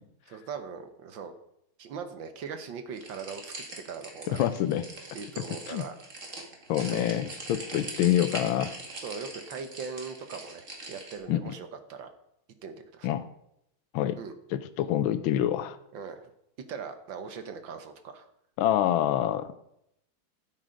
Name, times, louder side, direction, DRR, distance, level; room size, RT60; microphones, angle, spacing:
voice 1, 0.3-1.3 1.8-3.5 3.8-4.5 5.1-5.9 6.9-7.1 8.9-12.1 12.6-13.2 14.2-14.3 15.9-16.3 16.7-18.3, right 6 dB, 65° right, 9 dB, 1.6 m, -40 dB
sound 1, 3.0-11.2, right 2 dB, 35° right, 2.2 m, -42 dB
voice 2, 4.3-4.8 5.7-5.8 6.7-8.7 11.3-11.4 13.0-13.3 13.9-14.2 14.5-15.8 18.6-19.5, left 11 dB, 75° left, 10 dB, 1.4 m, -26 dB
12.0 x 7.6 x 5.1 m, 0.78 s
omnidirectional pair, 2.4 m